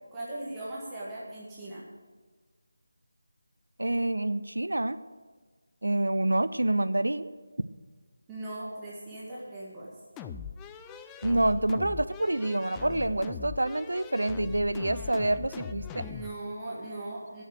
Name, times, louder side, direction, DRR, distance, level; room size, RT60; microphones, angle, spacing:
voice 1, 0.1-1.8 8.3-9.9 15.9-17.4, right 1 dB, 10° right, -8 dB, 1.9 m, -39 dB
voice 2, 3.8-5.0 5.8-7.3 11.2-16.0, right 1 dB, 70° right, 14 dB, 0.6 m, -27 dB
sound 1, 10.2-16.3, left 7 dB, 10° left, 0.4 m, -41 dB
12.0 x 6.7 x 8.0 m, 1.4 s
figure-of-eight pair, 160°, 0 cm